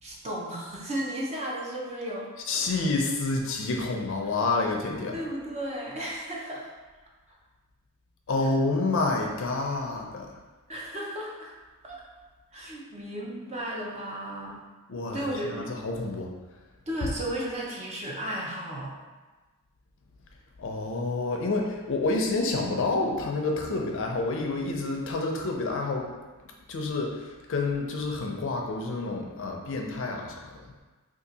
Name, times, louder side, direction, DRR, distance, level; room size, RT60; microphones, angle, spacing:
voice 1, 0.0-2.3 2.6-2.9 5.1-6.7 7.3-7.4 8.4-8.5 10.7-11.5 11.8-12.0 12.5-14.6 15.1-15.7 16.9-18.9, right 1 dB, 30° right, -3 dB, 0.6 m, -34 dB
voice 2, 2.5-5.2 8.3-10.3 14.9-16.3 20.6-26.1 26.7-30.3, left 3 dB, 60° left, 1 dB, 0.5 m, -28 dB
2.7 x 2.5 x 3.8 m, 1.3 s
head